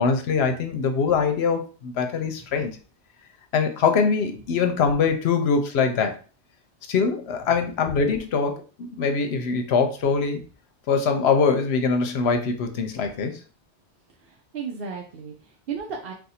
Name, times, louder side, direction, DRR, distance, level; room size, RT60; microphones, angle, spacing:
voice 1, 0.0-2.8 3.5-6.2 6.9-10.4 10.9-13.4, left 5 dB, 75° left, 6 dB, 0.9 m, -23 dB
voice 2, 14.2-16.1, right 6 dB, 65° right, 0 dB, 0.7 m, -34 dB
2.5 x 2.4 x 4.1 m, 0.37 s
omnidirectional pair, 1.1 m